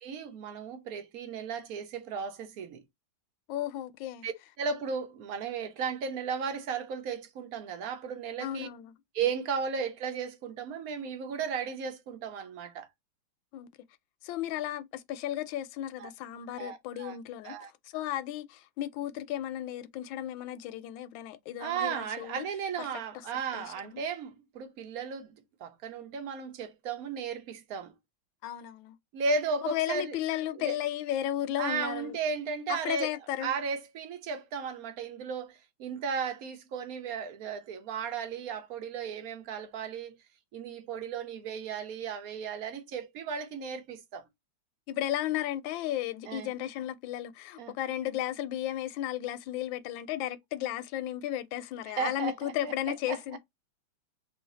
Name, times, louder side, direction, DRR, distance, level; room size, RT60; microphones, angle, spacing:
voice 1, 0.0-2.8 4.2-8.7 9.1-12.9 16.0-16.1 16.6-17.2 17.4-17.7 21.6-25.3 25.6-27.9 29.1-30.2 30.6-30.7 31.6-33.1 33.4-40.2 40.5-44.2 46.3-46.5 47.6-47.7 51.9-52.7 53.1-53.2, right 5 dB, 60° right, 1.0 m, -35 dB
voice 2, 3.5-4.3 8.4-8.9 13.5-13.7 14.2-17.6 17.8-22.5 23.5-24.0 28.4-29.0 29.6-32.2 32.7-33.5 44.9-53.4, left 12 dB, 80° left, 1.3 m, -34 dB
3.2 x 2.7 x 3.8 m
omnidirectional pair, 2.2 m